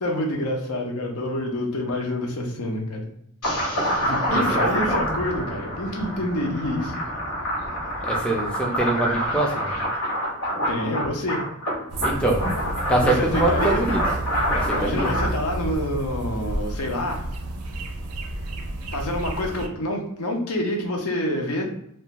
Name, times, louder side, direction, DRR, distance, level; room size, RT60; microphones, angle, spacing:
voice 1, 0.0-3.1 3.9-7.0 10.7-11.5 13.0-13.8 14.7-17.2 18.9-21.6, left 1 dB, 75° left, 1 dB, 0.6 m, -27 dB
sound 1, 3.4-15.3, equal, 90° left, 1.0 m, -27 dB
voice 2, 3.7-5.2 8.0-9.7 12.0-12.4 12.9-14.0 14.5-15.1, right 2 dB, 5° left, -2 dB, 0.4 m, -25 dB
sound 2, 11.9-19.7, right 1 dB, 80° right, 0.4 m, -31 dB
2.5 x 2.2 x 2.9 m, 0.74 s
head